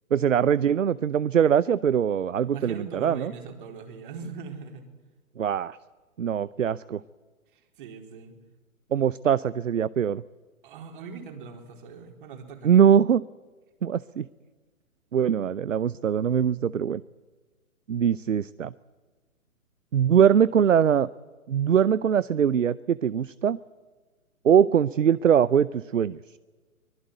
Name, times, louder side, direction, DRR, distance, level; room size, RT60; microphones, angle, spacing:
voice 1, 0.1-3.3 5.4-5.8 6.2-7.0 8.9-10.2 12.6-13.2 13.8-14.3 15.1-17.0 17.9-18.7 19.9-21.1 21.5-23.6 24.4-26.2, right 8 dB, 60° right, 19 dB, 0.7 m, -22 dB
voice 2, 2.5-4.9 7.8-8.4 10.6-12.7, right 5 dB, 35° right, 4 dB, 4.2 m, -40 dB
24.0 x 22.0 x 9.3 m, 1.4 s
figure-of-eight pair, 130°, 42 cm